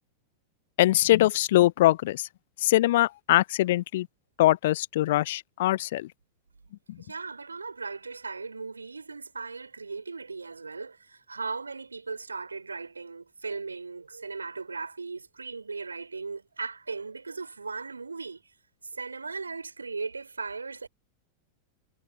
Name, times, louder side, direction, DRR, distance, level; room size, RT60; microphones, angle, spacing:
voice 1, 0.8-2.3 2.6-4.1 4.4-6.1 6.9-7.0, left 15 dB, 55° left, 0.3 m, -22 dB
voice 2, 7.0-18.4 18.8-20.9, right 4 dB, 75° right, 2.9 m, -37 dB
figure-of-eight pair, 90°, 0 cm